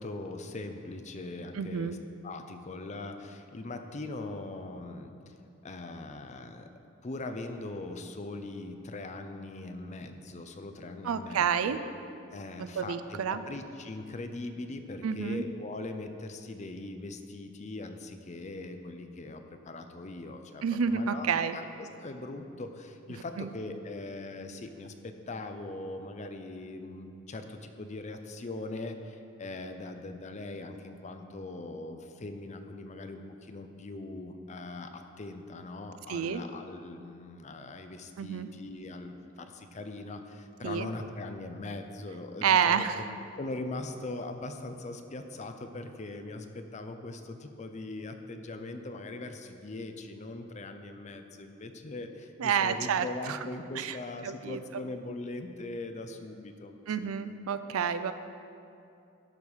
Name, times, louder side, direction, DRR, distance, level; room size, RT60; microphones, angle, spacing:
voice 1, 0.0-2.0 2.2-5.3 5.6-6.7 7.0-11.8 12.3-21.3 21.5-42.9 43.4-57.1, left 2 dB, 35° left, 7 dB, 0.5 m, -41 dB
voice 2, 1.5-2.0 11.0-11.8 12.6-13.4 15.0-15.5 20.6-21.6 23.1-23.5 36.1-36.4 38.2-38.5 40.6-40.9 42.4-43.0 52.4-53.4 53.8-54.0 54.2-54.6 56.9-58.1, right 7 dB, 80° right, 11 dB, 0.4 m, -29 dB
11.5 x 4.9 x 5.5 m, 2.6 s
head